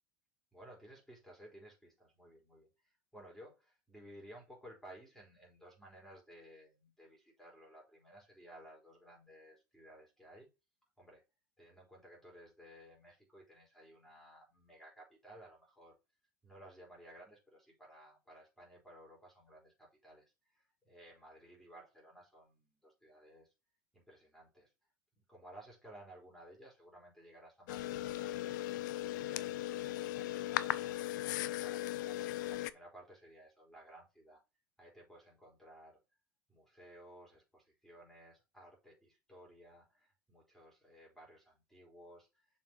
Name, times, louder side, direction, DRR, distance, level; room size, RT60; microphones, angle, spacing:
voice 1, 0.5-10.5 11.0-11.2 11.6-16.0 16.4-23.5 23.9-24.7 25.3-28.6 29.1-31.0 31.6-34.4 34.8-36.0 36.5-42.5, right 1 dB, 5° left, 3.9 m, -57 dB
sound 1, 27.7-32.7, left 14 dB, 65° left, 0.5 m, -37 dB
6.8 x 4.7 x 4.5 m
hypercardioid pair, 85°, 11 cm